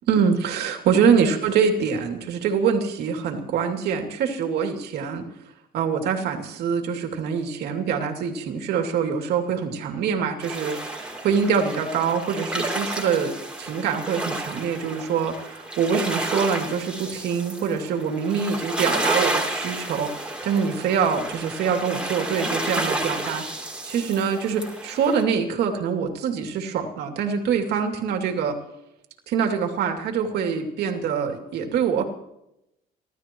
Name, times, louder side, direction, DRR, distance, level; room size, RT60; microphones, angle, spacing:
voice 1, 0.1-5.2 5.7-28.6 29.3-32.0, right 6 dB, 75° right, 3 dB, 2.8 m, -24 dB
sound 1, 10.4-25.2, right 1 dB, 5° right, 3.3 m, -31 dB
30.0 x 12.5 x 3.1 m, 0.82 s
cardioid pair, 110°, 17 cm